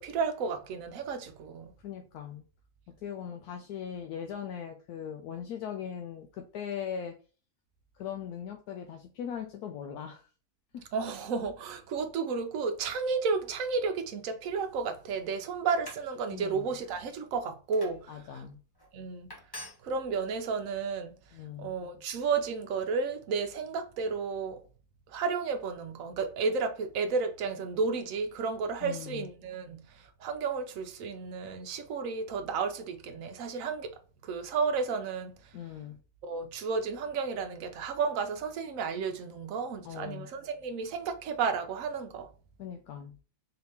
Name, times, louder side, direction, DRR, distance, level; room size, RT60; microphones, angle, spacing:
voice 1, 0.0-1.7 10.9-18.4 18.9-19.3 19.8-21.2 21.6-24.6 25.1-35.5 36.2-42.3, right 5 dB, 65° right, 1.1 m, -32 dB
voice 2, 1.8-2.4 3.0-7.2 7.9-10.3 10.7-10.9 16.3-16.7 18.1-18.6 21.3-21.7 28.8-29.3 35.5-36.0 39.8-40.3 42.6-43.2, left 8 dB, 80° left, 1.1 m, -39 dB
sound 1, 15.7-16.1 16.6-16.9 17.7-18.0 18.7-18.9 19.3-19.8, left 1 dB, 20° left, 0.7 m, -45 dB
4.0 x 2.8 x 3.4 m
omnidirectional pair, 1.6 m